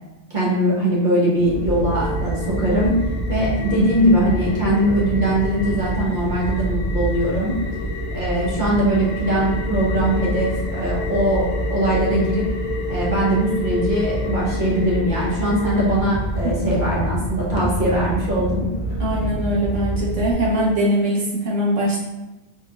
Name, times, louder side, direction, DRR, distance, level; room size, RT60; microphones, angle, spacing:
voice 1, 0.3-3.0 3.3-7.6 8.1-12.5 12.9-19.0, right 1 dB, 45° right, -5 dB, 1.1 m, -21 dB
sound 1, 1.4-20.3, equal, 70° left, 0.9 m, -26 dB
voice 2, 19.0-22.0, equal, 85° right, -5 dB, 1.5 m, -21 dB
4.5 x 3.2 x 2.4 m, 1.0 s
omnidirectional pair, 1.2 m